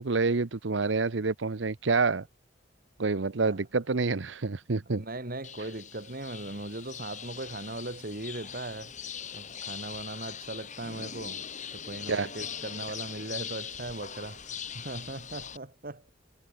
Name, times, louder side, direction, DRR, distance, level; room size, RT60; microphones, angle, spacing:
voice 1, 0.0-2.3 3.0-5.0 12.1-12.3, right 4 dB, 85° right, 0.9 m, -27 dB
voice 2, 4.9-8.9 9.3-11.4 11.7-16.1, right 2 dB, 50° right, 2.8 m, -39 dB
sound 1, 5.4-15.6, left 8 dB, 40° left, 3.5 m, -41 dB
head